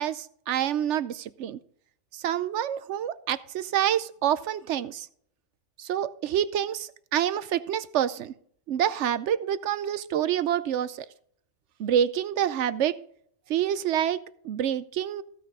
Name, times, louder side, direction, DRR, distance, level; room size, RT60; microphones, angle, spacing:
voice 1, 0.0-1.6 2.1-5.1 5.8-8.3 8.7-11.1 11.8-13.0 13.5-14.2 14.4-15.2, right 10 dB, 65° right, 15 dB, 0.9 m, -27 dB
15.5 x 6.4 x 3.6 m, 0.63 s
omnidirectional pair, 1.4 m